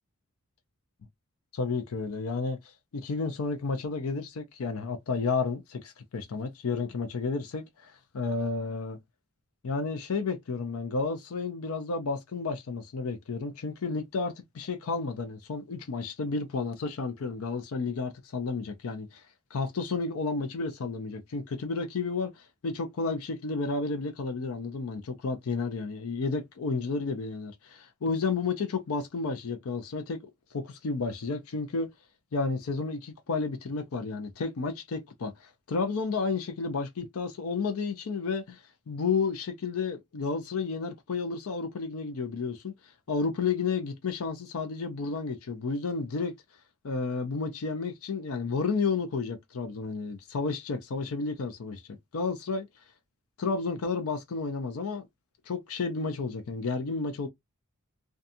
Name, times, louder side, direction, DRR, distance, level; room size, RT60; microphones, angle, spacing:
voice 1, 1.5-9.0 9.6-19.2 19.5-30.2 30.5-31.9 32.3-42.7 43.1-46.3 46.8-52.7 53.4-55.0 55.5-57.3, left 4 dB, 80° left, 0.5 m, -32 dB
2.5 x 2.3 x 2.6 m
head